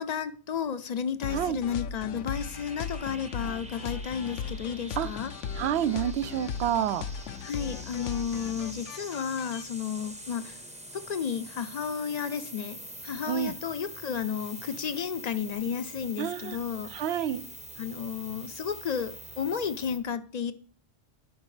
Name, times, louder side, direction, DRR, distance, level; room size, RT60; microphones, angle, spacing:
voice 1, 0.0-5.3 7.4-10.6 10.9-16.9 17.8-20.5, left 7 dB, 50° left, 11 dB, 0.5 m, -32 dB
sound 1, 1.2-9.6, left 6 dB, 90° left, 0.9 m, -37 dB
sound 2, 2.3-20.0, right 1 dB, 5° right, 0.6 m, -45 dB
voice 2, 5.6-7.0 13.3-13.5 16.2-16.6 16.9-17.4, right 10 dB, 70° right, 15 dB, 0.8 m, -28 dB
12.0 x 5.2 x 3.2 m, 0.43 s
omnidirectional pair, 1.2 m